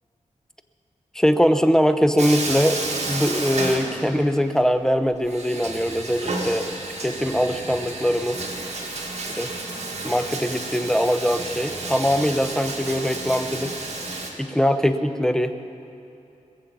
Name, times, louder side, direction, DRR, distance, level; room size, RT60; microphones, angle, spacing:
voice 1, 1.1-2.8 3.0-8.4 9.4-9.5 10.0-13.8 14.4-15.5, equal, 5° left, 9 dB, 0.8 m, -22 dB
Bathtub (filling or washing), 2.2-4.5 4.7-4.8 5.3-14.3, right 2 dB, 60° right, 1.9 m, -31 dB
21.5 x 7.5 x 7.0 m, 2.8 s
wide cardioid pair, 75°, 13 cm